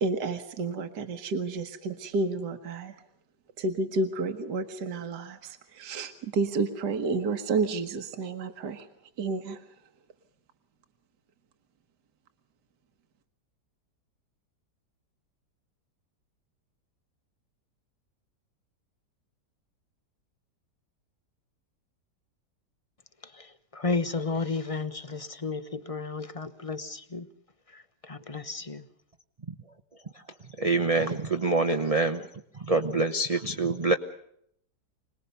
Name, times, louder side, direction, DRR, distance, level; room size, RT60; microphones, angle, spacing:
voice 1, 0.0-2.9 3.6-8.9 9.2-9.6, right 3 dB, 70° right, 7 dB, 1.9 m, -30 dB
voice 2, 23.2-27.3 27.7-28.9, left 3 dB, 25° left, 11 dB, 0.8 m, -33 dB
voice 3, 30.6-32.2 32.6-33.9, right 3 dB, 30° right, 6 dB, 0.7 m, -25 dB
26.0 x 20.0 x 6.9 m, 0.71 s
omnidirectional pair, 1.9 m